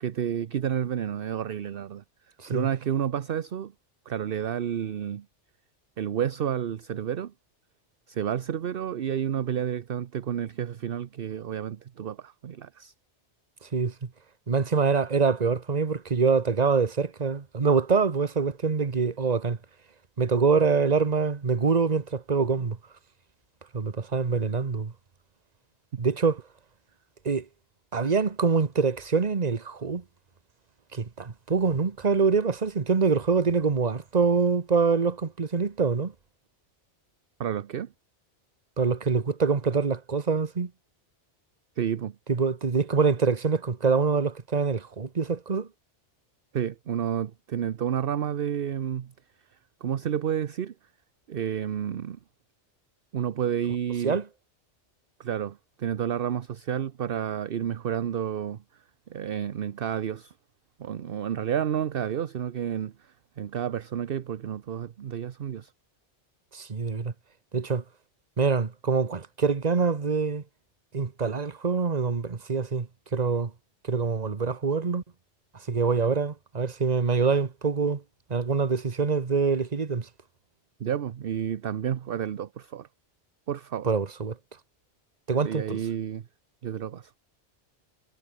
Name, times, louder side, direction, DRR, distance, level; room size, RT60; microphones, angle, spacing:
voice 1, 0.0-2.0 2.5-3.7 4.1-5.2 6.0-7.3 8.1-12.9 37.4-37.9 41.8-42.2 46.5-49.1 49.8-50.7 51.3-52.2 53.1-54.2 55.2-58.6 59.1-60.3 60.8-65.7 80.8-82.9 83.5-83.9 85.4-86.2 86.6-87.1, right 9 dB, 55° right, 0.9 m, -30 dB
voice 2, 13.7-14.1 14.5-19.6 20.2-22.8 23.7-24.9 26.0-26.4 27.2-27.4 27.9-30.0 30.9-36.1 38.8-40.7 42.3-45.7 54.0-54.2 66.5-67.1 67.5-67.8 68.4-70.4 70.9-73.5 73.9-75.0 75.7-78.0 78.3-80.1 83.8-84.3 85.3-85.8, right 5 dB, 35° right, 1.3 m, -25 dB
omnidirectional pair, 1.2 m